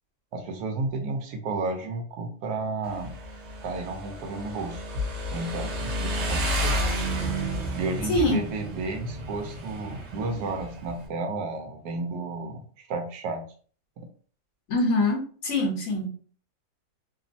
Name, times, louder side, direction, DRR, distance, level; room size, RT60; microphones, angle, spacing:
voice 1, 0.3-3.1 3.6-4.9 5.3-6.8 7.8-13.4 14.0-14.1, right 3 dB, 85° right, 4 dB, 1.2 m, -32 dB
Motorcycle, 2.8-11.1, equal, 60° right, 0.8 m, -31 dB
voice 2, 8.1-8.4 14.7-16.1, left 2 dB, 60° left, -1 dB, 1.2 m, -24 dB
2.9 x 2.0 x 2.6 m, 0.44 s
omnidirectional pair, 1.7 m